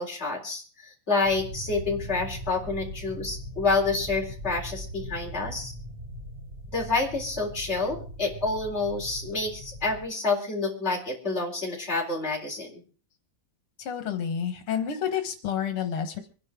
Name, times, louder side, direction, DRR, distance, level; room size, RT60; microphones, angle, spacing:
voice 1, 0.0-5.7 6.7-12.8, left 3 dB, 30° left, -1 dB, 4.2 m, -28 dB
sound 1, 1.2-10.1, equal, 20° right, 2.2 m, -40 dB
voice 2, 13.8-16.2, left 8 dB, 85° left, 7 dB, 2.3 m, -29 dB
25.0 x 11.0 x 3.7 m, 0.40 s
omnidirectional pair, 2.4 m